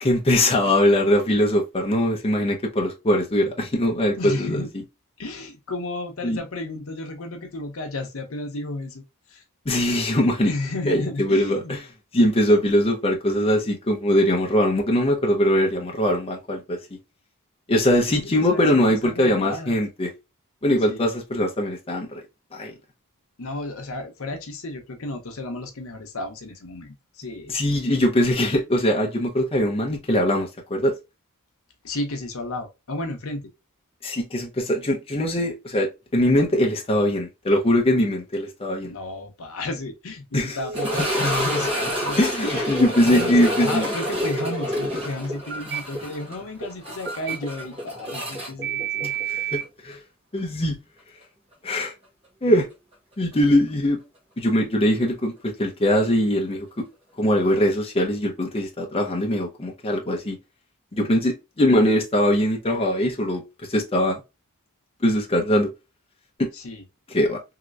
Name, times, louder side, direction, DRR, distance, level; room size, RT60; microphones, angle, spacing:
voice 1, 0.0-4.6 6.2-6.4 9.7-10.5 10.9-11.6 12.1-16.8 17.7-20.1 20.6-22.2 22.5-22.7 27.5-30.9 34.0-38.9 40.3-40.6 41.0-41.1 42.2-43.9 49.3-50.0 50.3-50.8 51.6-51.9 52.4-52.7 53.2-54.0 54.4-56.8 57.2-60.4 60.9-63.4 63.7-64.2 65.0-65.7 67.1-67.4, left 1 dB, 25° left, 0.7 m, -21 dB
voice 2, 4.2-4.7 5.2-9.0 9.3-9.4 10.4-11.8 17.9-19.8 20.9-21.1 23.4-27.6 31.8-33.5 38.8-42.7 43.0-49.1 66.5-66.9, left 2 dB, 65° left, 0.8 m, -32 dB
Telephone, 40.6-41.1 44.1-44.6 45.5-45.8 47.0-47.4 48.6-49.6, right 8 dB, 55° right, 0.5 m, -30 dB
sound 1, 40.7-49.7 49.9-50.0 50.6-50.7 53.3-53.4, equal, 30° right, 1.3 m, -28 dB
3.1 x 2.9 x 2.4 m
head